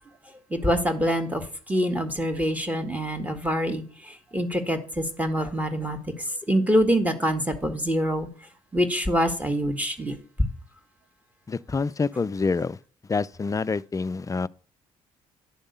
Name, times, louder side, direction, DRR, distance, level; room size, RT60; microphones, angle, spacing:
voice 1, 0.5-8.3 8.7-10.1, equal, 10° right, 1.6 m, -25 dB
voice 2, 11.5-12.8 13.1-14.5, left 4 dB, 20° left, 0.4 m, -27 dB
10.5 x 3.6 x 6.7 m
supercardioid pair, 65°, 15 cm